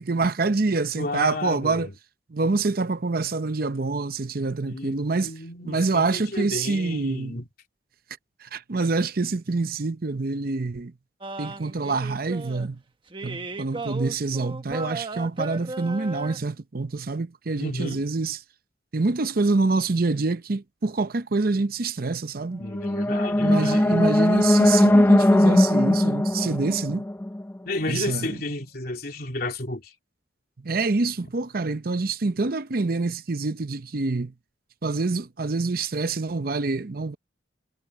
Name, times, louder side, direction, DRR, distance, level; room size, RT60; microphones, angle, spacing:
voice 1, 0.0-1.9 2.3-5.3 5.6-7.4 8.4-10.9 11.4-12.8 13.2-18.4 18.9-22.6 23.4-27.0 27.9-28.3 30.6-34.3 34.8-37.2, right 3 dB, 55° right, 0.7 m, -26 dB
voice 2, 1.0-1.9 4.7-7.5 17.6-18.1 22.6-24.0 27.6-29.9, left 2 dB, 55° left, 3.2 m, -32 dB
sound 1, 11.2-12.7 13.1-16.4, right 2 dB, 30° right, 1.2 m, -35 dB
sound 2, 22.6-27.7, left 1 dB, 10° left, 0.3 m, -19 dB
head